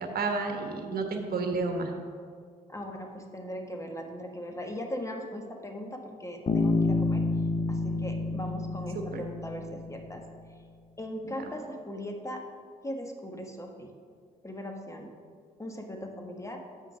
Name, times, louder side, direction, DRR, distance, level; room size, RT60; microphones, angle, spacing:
voice 1, 0.1-1.9 8.9-9.2, right 3 dB, 50° right, 4 dB, 1.3 m, -31 dB
voice 2, 2.7-7.2 7.7-10.2 11.0-12.4 12.8-13.9 14.4-15.1 15.6-16.6, equal, 15° left, 3 dB, 1.4 m, -39 dB
Bass guitar, 6.5-10.2, left 3 dB, 35° left, 0.9 m, -29 dB
6.7 x 5.7 x 6.3 m, 2.1 s
hypercardioid pair, 45°, 19 cm